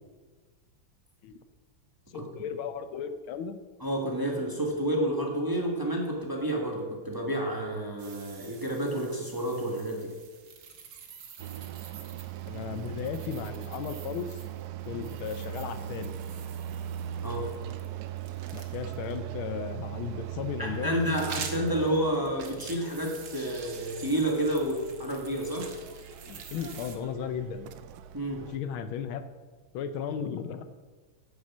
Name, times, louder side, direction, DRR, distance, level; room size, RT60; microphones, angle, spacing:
voice 1, 2.1-3.6 12.5-14.4 14.9-16.2 18.5-21.0 26.3-27.7 28.5-29.2 29.7-30.7, left 7 dB, 85° left, 10 dB, 1.6 m, -35 dB
voice 2, 3.8-10.1 17.2-17.5 20.6-25.7 28.1-28.4, right 1 dB, 10° right, 0 dB, 1.2 m, -30 dB
sound 1, 8.0-19.2 20.7-27.0, right 6 dB, 65° right, 1.7 m, -47 dB
sound 2, 11.4-28.6, right 11 dB, 80° right, 0.8 m, -40 dB
9.6 x 6.4 x 7.2 m, 1.4 s
omnidirectional pair, 2.2 m